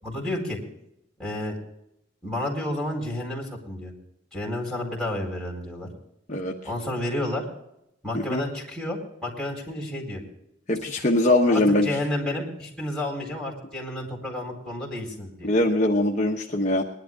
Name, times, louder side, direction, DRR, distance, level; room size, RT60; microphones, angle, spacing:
voice 1, 0.0-0.6 1.2-1.6 2.2-3.9 4.3-5.9 6.6-7.4 8.0-10.2 11.0-11.1 11.5-15.5, left 1 dB, 5° left, -3 dB, 4.5 m, -31 dB
voice 2, 10.7-11.9 15.4-16.8, left 1 dB, 35° left, -1 dB, 1.1 m, -22 dB
21.0 x 11.5 x 3.7 m, 0.80 s
head